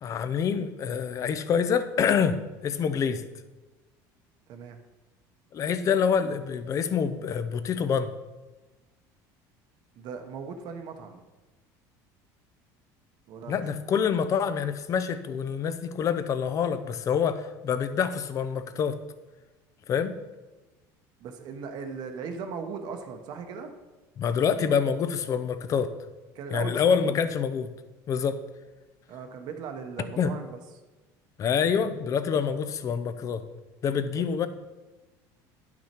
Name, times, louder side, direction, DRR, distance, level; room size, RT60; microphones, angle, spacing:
voice 1, 0.0-3.2 5.5-8.1 13.5-18.9 19.9-20.2 24.2-25.9 26.5-27.7 28.1-28.4 30.2-30.3 31.4-33.4 33.8-34.5, left 7 dB, 35° left, 11 dB, 0.6 m, -26 dB
voice 2, 10.0-11.2 13.3-13.6 21.2-23.7 26.3-27.2 29.1-30.5 34.1-34.3, right 5 dB, 55° right, 6 dB, 0.9 m, -38 dB
9.7 x 6.0 x 4.4 m, 1.1 s
cardioid pair, 135°, 9 cm